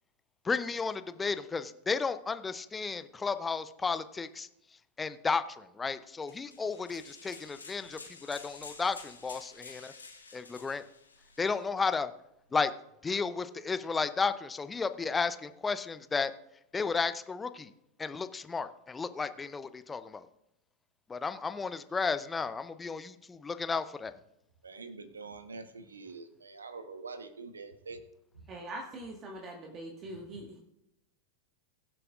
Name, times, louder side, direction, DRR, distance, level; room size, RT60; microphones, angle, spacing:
voice 1, 0.4-4.5 5.0-9.9 10.3-10.8 11.4-12.1 12.5-12.7 13.0-16.3 16.7-17.7 18.0-20.3 21.1-24.1, left 4 dB, 15° left, 12 dB, 0.6 m, -33 dB
sound 1, 6.3-11.7, left 4 dB, 75° left, 1.2 m, -50 dB
voice 2, 24.6-28.0, right 4 dB, 75° right, 10 dB, 1.1 m, -45 dB
voice 3, 28.5-30.6, right 1 dB, 30° right, 1 dB, 1.6 m, -42 dB
22.5 x 7.7 x 2.5 m, 0.83 s
figure-of-eight pair, 90°, 0 cm